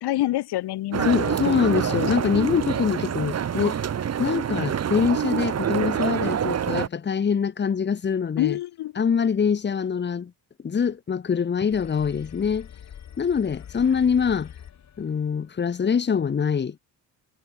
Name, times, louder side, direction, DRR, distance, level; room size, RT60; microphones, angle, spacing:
voice 1, 0.0-2.0 8.4-8.9, left 15 dB, 70° left, 2.2 m, -28 dB
sound 1, 0.9-6.9, right 8 dB, 35° right, 3.7 m, -26 dB
voice 2, 1.0-3.8 4.2-8.6 9.0-10.3 10.6-12.7 13.2-14.5 15.0-16.8, left 6 dB, 25° left, 2.1 m, -24 dB
sound 2, 11.7-15.3, left 9 dB, 40° left, 6.4 m, -44 dB
cardioid pair, 175°, 41 cm